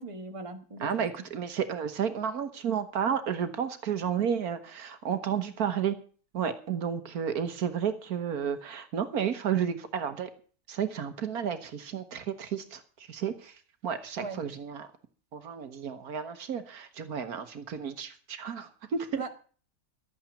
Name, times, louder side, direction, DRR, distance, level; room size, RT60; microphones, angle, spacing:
voice 1, 0.0-0.9 14.2-14.4 19.2-19.3, right 3 dB, 20° right, 5 dB, 1.5 m, -38 dB
voice 2, 0.8-6.0 6.3-10.3 10.7-14.9 15.3-19.2, right 8 dB, 80° right, 10 dB, 1.7 m, -32 dB
12.5 x 8.9 x 7.0 m, 0.41 s
omnidirectional pair, 1.6 m